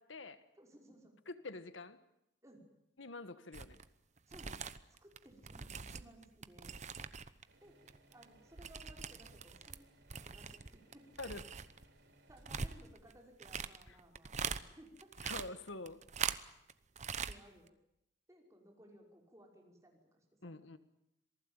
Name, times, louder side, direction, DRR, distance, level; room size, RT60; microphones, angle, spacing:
voice 1, 0.0-0.4 1.3-2.0 3.0-3.8 11.2-11.5 15.2-16.0 20.4-20.8, left 2 dB, 85° left, 12 dB, 1.5 m, -46 dB
voice 2, 0.5-1.1 2.4-2.7 4.3-4.6 5.0-6.7 7.6-7.8 8.1-9.9 10.2-11.1 12.3-15.1 17.1-17.7 18.3-20.8, right 1 dB, 15° right, 1 dB, 5.5 m, -60 dB
sound 1, 3.5-3.8 4.2-7.4 7.7-9.8 10.1-14.6 15.0-16.7 17.0-17.4 17.7-17.8, right 6 dB, 40° right, 0.9 m, -42 dB
sound 2, 7.5-14.4, right 1 dB, 65° right, 5.0 m, -68 dB
27.0 x 19.5 x 9.0 m, 0.83 s
head